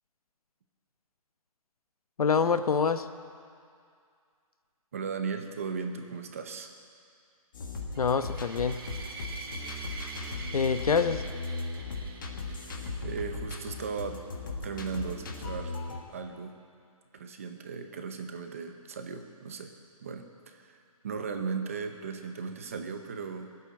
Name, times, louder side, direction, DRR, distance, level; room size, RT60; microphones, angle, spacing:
voice 1, 2.2-3.1 8.0-8.8 10.5-11.2, left 5 dB, 80° left, 10 dB, 1.0 m, -26 dB
voice 2, 4.9-6.7 12.5-12.7 13.0-14.2 14.6-15.7 16.1-16.6 17.1-19.7 20.0-23.5, right 5 dB, 25° right, 6 dB, 0.7 m, -37 dB
sound 1, 7.5-16.0, left 3 dB, 35° left, 1.5 m, -37 dB
sound 2, 7.9-13.2, right 3 dB, 40° right, 1.4 m, -44 dB
19.5 x 8.4 x 8.9 m, 2.3 s
hypercardioid pair, 175°, 19 cm